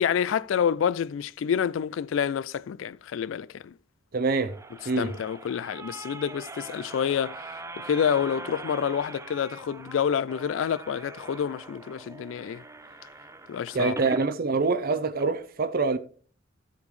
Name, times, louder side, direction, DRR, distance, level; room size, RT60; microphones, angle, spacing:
voice 1, 0.0-3.7 5.0-12.6 13.5-13.9, left 8 dB, 80° left, 0.3 m, -28 dB
sound 1, 4.1-14.3 14.8-14.9 15.1-15.2, right 2 dB, 15° right, 0.7 m, -42 dB
voice 2, 4.1-4.6 4.9-5.1 13.7-16.0, right 4 dB, 50° right, 0.6 m, -25 dB
12.5 x 8.4 x 3.2 m
head